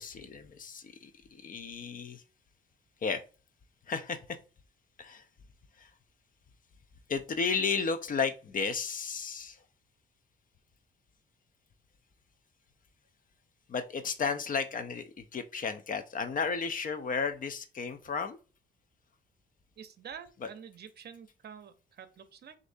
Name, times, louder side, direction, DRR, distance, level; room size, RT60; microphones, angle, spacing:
voice 1, 0.0-2.2 3.0-3.2 3.9-4.4 5.0-5.2 5.8-5.9 7.1-9.6 13.7-18.4 20.4-20.5, left 5 dB, 45° left, 0.6 m, -33 dB
voice 2, 19.8-22.6, right 8 dB, 55° right, 0.7 m, -48 dB
6.3 x 2.7 x 2.6 m
cardioid pair, 90°, 20 cm